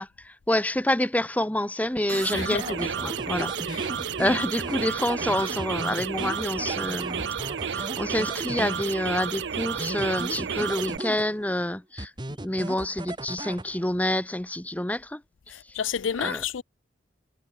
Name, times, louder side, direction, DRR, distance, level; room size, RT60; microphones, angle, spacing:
voice 1, 0.0-3.5 4.2-7.3 7.7-15.2 15.7-15.8 16.2-16.4, left 1 dB, 10° left, 0.8 m, -28 dB
sound 1, 2.1-11.0, right 7 dB, 70° right, 0.6 m, -31 dB
sound 2, 2.4-9.2 9.6-11.6 12.0-14.0, right 1 dB, 25° right, 1.2 m, -37 dB
voice 2, 15.5-16.6, left 7 dB, 85° left, 0.5 m, -30 dB
head